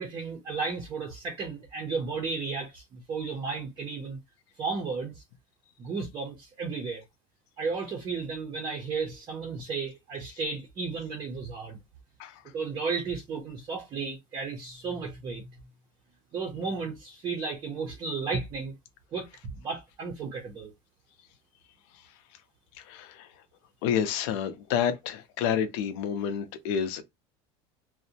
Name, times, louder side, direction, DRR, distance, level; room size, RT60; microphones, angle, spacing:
voice 1, 0.0-4.2 4.6-5.2 5.8-7.0 7.6-11.8 12.5-15.5 16.3-18.7 19.1-19.3 19.6-20.7, right 4 dB, 25° right, 0.5 m, -33 dB
voice 2, 22.9-23.3 23.8-27.0, left 8 dB, 75° left, 0.6 m, -29 dB
2.6 x 2.1 x 2.7 m
cardioid pair, 170°, 14 cm